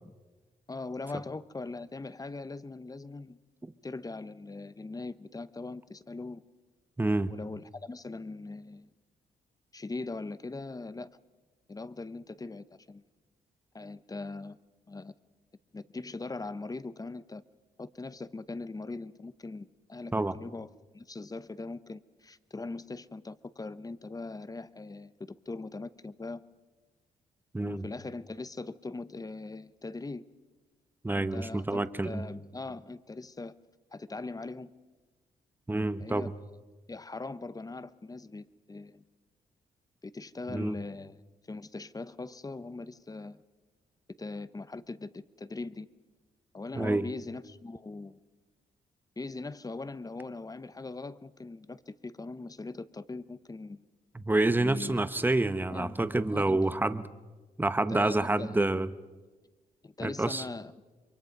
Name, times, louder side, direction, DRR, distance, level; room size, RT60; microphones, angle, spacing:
voice 1, 0.7-3.4 3.8-6.4 7.3-8.9 9.7-11.2 11.7-13.0 13.7-14.6 14.9-15.1 15.7-17.4 17.8-20.7 20.9-26.4 27.6-30.3 31.1-33.6 33.9-34.7 36.0-36.3 36.9-39.0 40.0-41.2 41.5-43.4 44.2-45.9 46.5-48.2 49.2-53.8 54.6-55.0 55.7-56.0 56.3-56.8 57.9-58.6 59.8-60.7, left 3 dB, 25° left, 15 dB, 0.9 m, -41 dB
voice 2, 7.0-7.3 20.1-20.4 27.5-27.9 31.0-32.2 35.7-36.3 40.5-40.7 46.7-47.1 54.1-57.0 57.6-58.9 60.0-60.4, right 2 dB, 10° right, 12 dB, 1.0 m, -28 dB
28.0 x 23.0 x 5.4 m, 1.3 s
cardioid pair, 70°, 16 cm